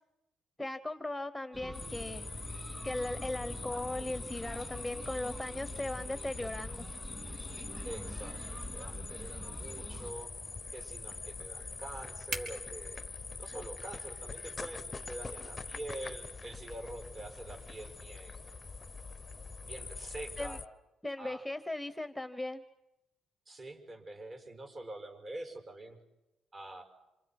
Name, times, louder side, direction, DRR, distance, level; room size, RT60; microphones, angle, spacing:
voice 1, 0.6-2.3 2.8-6.8 20.4-20.6 21.0-22.6, left 2 dB, 5° left, 10 dB, 1.1 m, -38 dB
sound 1, 1.5-10.1, equal, 15° right, 3.0 m, -46 dB
sound 2, 1.7-20.7, left 4 dB, 25° left, 0.9 m, -44 dB
sound 3, 6.1-18.0, right 3 dB, 65° right, 4.4 m, -52 dB
voice 2, 7.8-10.3 10.7-13.0 13.4-18.6 19.6-20.6 21.2-21.4 23.5-26.0 26.5-26.8, right 1 dB, 40° right, 4 dB, 6.6 m, -45 dB
28.0 x 27.5 x 6.1 m, 0.93 s
cardioid pair, 90°, 0 cm